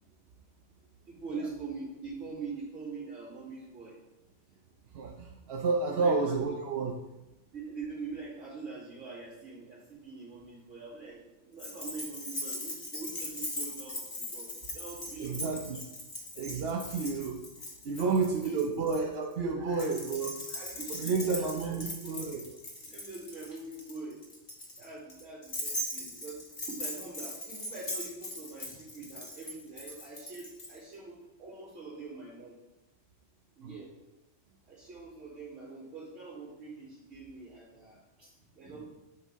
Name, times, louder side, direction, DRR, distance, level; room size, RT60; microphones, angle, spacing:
voice 1, 1.1-4.0 5.9-6.4 7.5-15.6 17.9-18.8 19.6-19.9 20.5-22.1 22.9-24.2 24.8-32.5 33.6-33.9 34.7-38.8, right 4 dB, 90° right, -11 dB, 3.1 m, -44 dB
voice 2, 4.9-6.9 15.2-15.8 16.4-17.4 17.8-20.4 20.9-22.4 33.6-33.7, right 4 dB, 60° right, 0 dB, 0.9 m, -30 dB
Keys jangling, 11.6-19.0 19.7-30.7, left 1 dB, 50° left, 1.5 m, -40 dB
8.6 x 5.9 x 3.6 m, 1.0 s
omnidirectional pair, 1.2 m